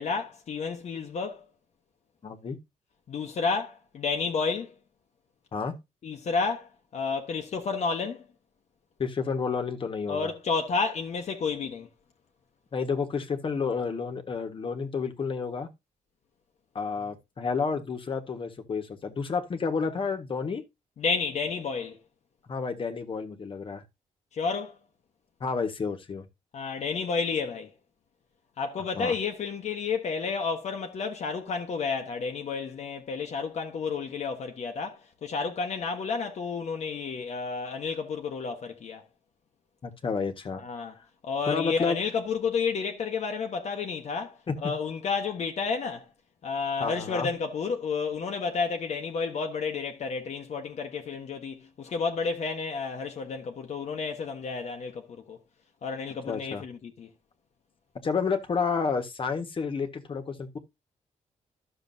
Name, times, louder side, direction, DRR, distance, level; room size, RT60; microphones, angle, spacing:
voice 1, 0.0-1.5 3.1-4.8 6.0-8.3 10.1-11.9 21.0-22.0 24.3-24.8 26.5-27.7 28.6-39.0 40.5-41.0 41.2-46.1 46.4-55.4 55.8-57.1, left 5 dB, 55° left, 1.2 m, -31 dB
voice 2, 2.2-2.6 5.5-5.8 9.0-10.3 12.7-15.7 16.7-20.6 22.5-23.8 25.4-26.2 28.9-29.1 39.8-40.6 41.5-42.0 44.5-44.7 46.8-47.3 56.3-56.6 58.0-60.6, left 5 dB, 40° left, 1.5 m, -30 dB
12.0 x 6.8 x 2.7 m
cardioid pair, 125°, 13 cm